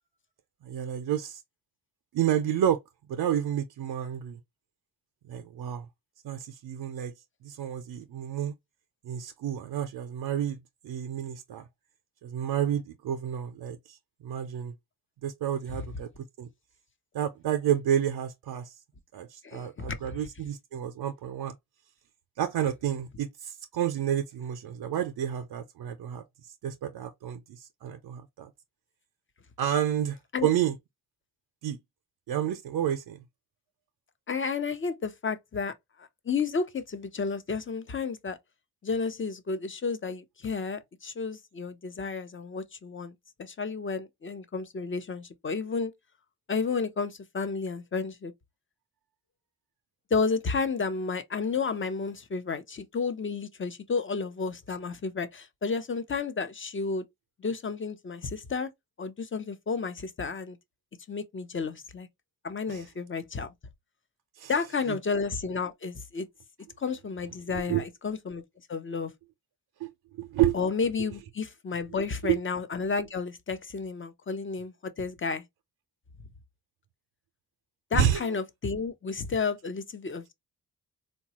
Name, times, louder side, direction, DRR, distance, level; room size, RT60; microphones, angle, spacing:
voice 1, 0.6-1.4 2.1-2.8 3.1-4.4 5.3-5.9 6.2-7.1 7.4-8.6 9.0-10.6 10.8-11.7 12.2-14.0 14.2-14.7 15.2-16.1 16.4-16.5 17.1-18.8 19.1-21.5 22.4-28.5 29.6-30.8 31.6-31.8 32.3-33.2 62.7-62.8 64.4-64.5 64.9-65.0 67.5-67.8 69.8-69.9 70.2-70.5 72.2-72.4 77.9-78.2, right 10 dB, 75° right, 0.6 m, -30 dB
voice 2, 19.4-20.2 30.3-30.5 34.3-38.4 38.8-45.9 46.5-48.3 50.1-57.0 57.4-58.7 59.0-60.6 61.1-62.1 62.4-63.5 64.5-66.3 66.8-68.4 68.7-69.1 70.5-75.4 77.9-80.3, left 4 dB, 30° left, 0.7 m, -32 dB
4.0 x 2.2 x 2.8 m
cardioid pair, 65°, 38 cm